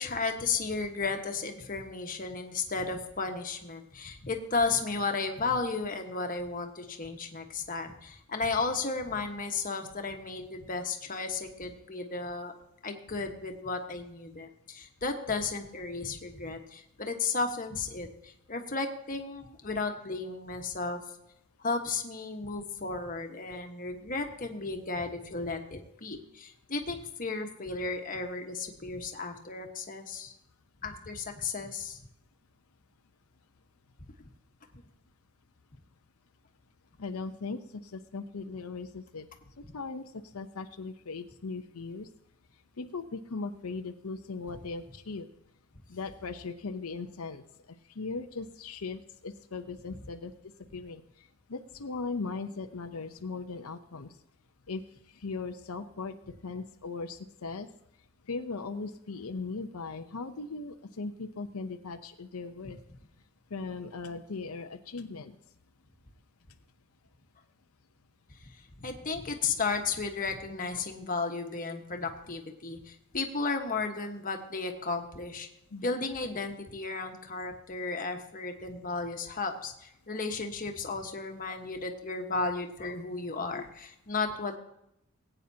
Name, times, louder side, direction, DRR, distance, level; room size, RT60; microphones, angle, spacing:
voice 1, 0.0-12.5 12.8-21.0 21.6-30.3 30.8-32.0 34.7-34.8 68.4-68.5 68.8-75.5 75.8-84.6, left 4 dB, 40° left, 4 dB, 1.4 m, -34 dB
voice 2, 37.0-39.3 39.7-42.1 42.8-45.3 45.9-47.4 48.0-50.3 50.7-51.0 51.5-54.1 54.7-54.8 55.2-57.7 58.3-62.8 63.5-65.3 71.7-71.8 75.7-75.9 83.5-83.6, left 4 dB, 85° left, 7 dB, 0.7 m, -38 dB
20.0 x 9.0 x 2.8 m, 0.80 s
head